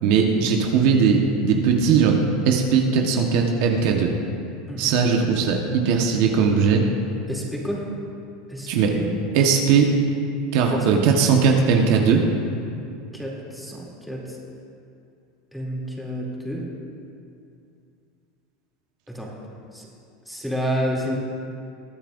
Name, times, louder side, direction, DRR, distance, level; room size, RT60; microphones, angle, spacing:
voice 1, 0.0-4.1 4.8-6.8 8.7-8.9 9.3-9.9 10.5-12.2, right 6 dB, 65° right, 2 dB, 1.3 m, -19 dB
voice 2, 7.3-7.9 8.5-9.1 10.7-10.9 13.1-14.4 15.5-16.6 19.1-19.3 19.7-19.9 20.3-21.2, equal, ahead, -3 dB, 2.9 m, -29 dB
21.5 x 8.9 x 2.6 m, 2.5 s
hypercardioid pair, 100°, 0 cm